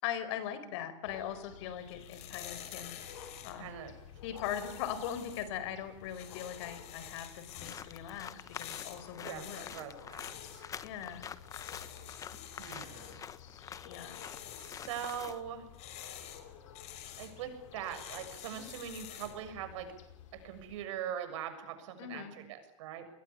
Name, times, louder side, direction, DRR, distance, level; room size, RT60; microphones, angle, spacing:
voice 1, 0.0-3.0 3.4-3.7 4.2-8.3 8.6-9.7 10.8-11.2 13.9-14.3 22.0-22.4, left 10 dB, 60° left, 13 dB, 4.6 m, -40 dB
sound 1, 1.0-20.9, left 8 dB, 80° left, 5.6 m, -53 dB
sound 2, 1.8-19.4, left 11 dB, 40° left, 6.0 m, -50 dB
voice 2, 3.6-3.9 9.2-10.6 12.6-13.3 14.6-15.7 17.2-19.9 20.3-23.1, right 9 dB, 70° right, 8 dB, 6.9 m, -42 dB
sound 3, 7.5-15.4, left 8 dB, 20° left, 1.1 m, -47 dB
28.5 x 21.5 x 8.5 m, 0.82 s
supercardioid pair, 145°, 16 cm